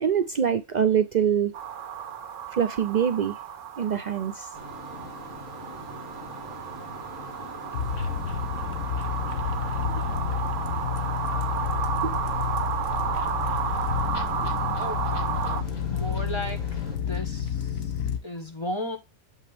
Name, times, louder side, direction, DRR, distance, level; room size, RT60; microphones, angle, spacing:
voice 1, 0.0-1.5 2.5-3.4 3.8-4.5 9.8-9.9 12.0-12.2, right 8 dB, 85° right, 0.4 m, -24 dB
sound 1, 1.5-15.6, right 8 dB, 65° right, 1.1 m, -33 dB
sound 2, 4.5-17.0, left 1 dB, 45° left, 3.8 m, -43 dB
sound 3, 7.7-18.2, left 7 dB, 75° left, 1.3 m, -30 dB
voice 2, 14.7-19.0, left 1 dB, 20° left, 1.4 m, -36 dB
7.1 x 5.5 x 3.3 m
omnidirectional pair, 1.5 m